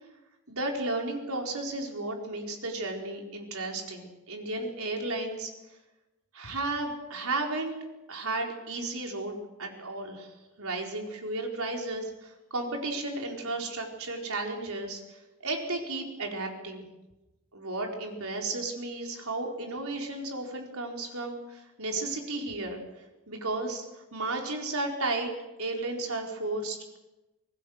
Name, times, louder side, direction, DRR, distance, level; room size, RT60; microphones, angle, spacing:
voice 1, 0.5-5.5 6.3-7.7 8.1-10.3 10.6-16.9 17.5-22.8 23.3-25.3 25.6-27.0, right 2 dB, 80° right, 1 dB, 4.5 m, -33 dB
26.0 x 19.5 x 6.5 m, 1.0 s
head